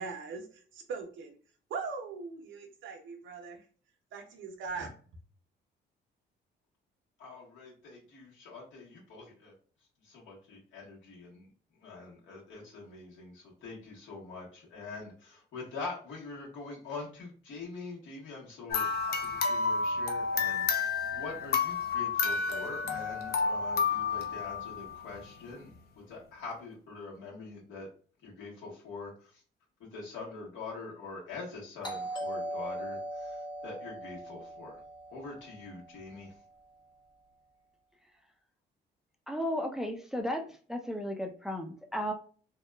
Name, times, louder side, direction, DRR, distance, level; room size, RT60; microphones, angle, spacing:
voice 1, 0.0-1.4 1.7-3.6 4.1-4.9, right 4 dB, 75° right, 5 dB, 0.7 m, -40 dB
voice 2, 7.2-9.5 10.0-11.5 11.8-27.9 28.2-29.4 29.8-34.8 35.1-36.3, left 3 dB, 75° left, -4 dB, 1.3 m, -44 dB
sound 1, 18.7-25.2, left 5 dB, 55° left, 0.5 m, -30 dB
Doorbell, 31.8-36.4, right 1 dB, 25° left, 1.1 m, -40 dB
voice 3, 39.3-42.1, equal, ahead, 4 dB, 0.4 m, -34 dB
2.7 x 2.2 x 2.2 m, 0.41 s
cardioid pair, 90°, 20 cm